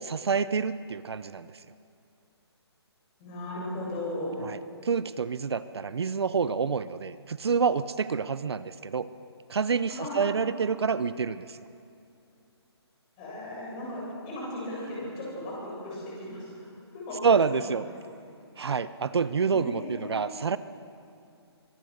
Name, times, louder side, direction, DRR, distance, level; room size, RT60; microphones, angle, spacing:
voice 1, 0.0-1.5 4.4-9.1 9.5-11.6 17.2-17.8 18.6-20.6, right 5 dB, 70° right, 14 dB, 0.7 m, -27 dB
voice 2, 3.2-4.5 10.0-10.2 13.2-16.6 16.9-17.2 17.5-17.7 18.1-18.2 19.3-20.2, left 1 dB, 20° left, -5 dB, 7.6 m, -36 dB
24.0 x 18.5 x 6.5 m, 2.6 s
hypercardioid pair, 170°, 14 cm